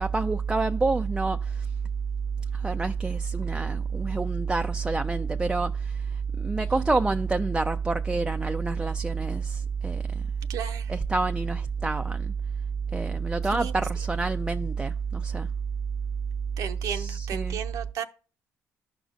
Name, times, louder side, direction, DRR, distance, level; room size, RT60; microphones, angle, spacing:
voice 1, 0.0-1.7 2.5-6.0 6.4-10.2 10.9-12.3 12.9-15.5 16.8-17.6, right 4 dB, 15° right, 0.4 m, -27 dB
voice 2, 10.5-10.9 13.5-13.7 16.6-18.0, right 8 dB, 75° right, 0.7 m, -34 dB
13.0 x 5.0 x 2.5 m
supercardioid pair, 65°, 6 cm